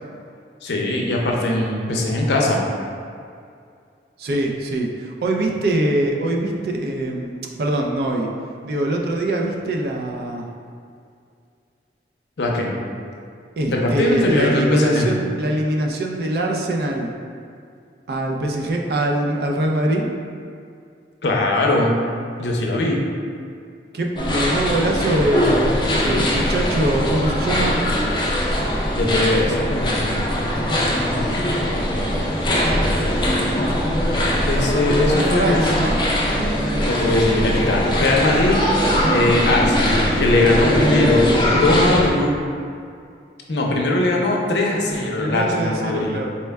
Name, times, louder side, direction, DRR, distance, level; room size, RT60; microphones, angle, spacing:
voice 1, 0.6-2.6 12.4-12.7 13.7-15.1 21.2-21.9 22.4-23.0 28.9-29.7 34.5-35.8 36.8-38.6 39.1-41.2 41.5-42.3 43.5-46.1, left 2 dB, 75° left, -1 dB, 0.5 m, -20 dB
voice 2, 4.2-8.3 8.6-10.5 13.6-17.1 18.1-20.1 23.9-27.8 35.1-36.0 45.2-46.3, right 1 dB, 60° right, 1 dB, 0.4 m, -23 dB
sound 1, 24.2-42.1, equal, 25° left, 0.4 m, -21 dB
4.2 x 2.1 x 3.4 m, 2.3 s
head